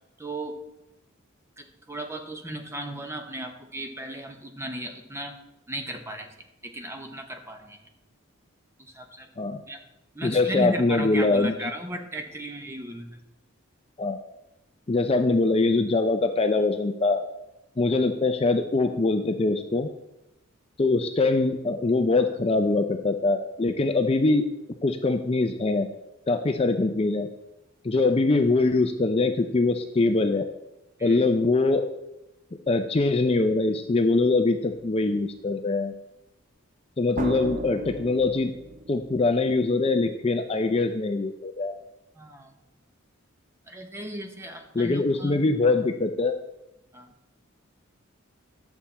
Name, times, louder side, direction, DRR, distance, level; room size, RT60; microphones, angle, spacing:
voice 1, 0.2-0.6 1.6-5.4 5.7-6.3 6.6-7.8 8.8-9.3 9.7-9.8 10.1-13.2 31.0-31.3 42.1-42.6 43.7-45.5 46.9-47.1, right 1 dB, 15° right, 4 dB, 0.9 m, -35 dB
voice 2, 10.2-11.7 14.0-14.2 14.9-17.2 17.8-19.9 20.8-24.5 24.8-25.9 26.3-27.3 27.8-30.4 31.0-31.8 32.7-35.9 37.0-38.5 38.9-41.8 44.7-46.3, left 3 dB, 30° left, 6 dB, 0.5 m, -23 dB
sound 1, 34.7-34.8 37.2-39.8, right 2 dB, 40° right, 0.7 m, -37 dB
11.0 x 7.1 x 4.2 m, 0.93 s
head